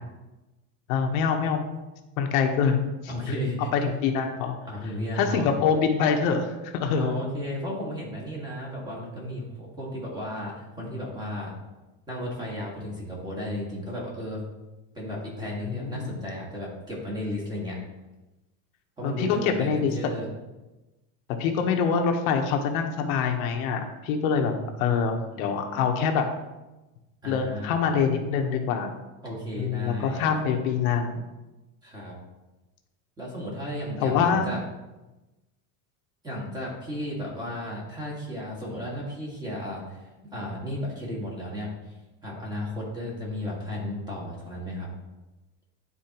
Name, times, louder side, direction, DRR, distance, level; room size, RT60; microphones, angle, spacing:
voice 1, 0.9-1.6 2.2-3.3 3.7-4.6 5.2-7.2 15.6-16.1 19.0-20.2 21.4-24.5 24.8-26.3 27.3-28.9 29.6-31.2 34.0-34.5, left 6 dB, 70° left, 4 dB, 1.0 m, -25 dB
voice 2, 3.1-3.7 4.7-5.5 6.9-11.5 12.1-14.4 14.9-17.8 19.0-20.3 24.4-25.0 25.3-25.5 27.2-27.8 29.2-30.3 31.8-32.2 33.2-34.6 36.2-40.0 40.3-41.9 42.2-44.9, left 1 dB, 10° right, -4 dB, 1.7 m, -34 dB
10.5 x 4.3 x 2.9 m, 1.1 s
cardioid pair, 165°, 42 cm